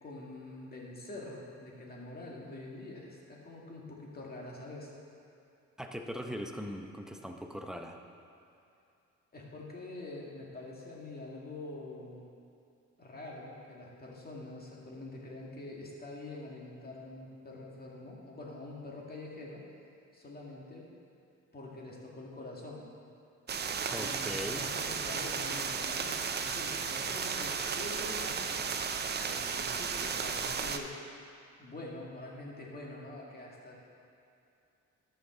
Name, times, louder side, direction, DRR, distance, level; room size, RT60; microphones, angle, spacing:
voice 1, 0.0-4.9 9.3-12.3 13.0-19.6 20.1-20.9 21.5-22.9 23.9-28.7 29.2-30.9 31.6-33.8, left 2 dB, 30° left, -3 dB, 2.1 m, -45 dB
voice 2, 5.8-8.0 23.9-24.6, equal, ahead, 3 dB, 0.7 m, -40 dB
sound 1, 23.5-30.8, right 6 dB, 35° right, 0.6 m, -34 dB
13.0 x 5.6 x 3.9 m, 2.6 s
cardioid pair, 90°, 30 cm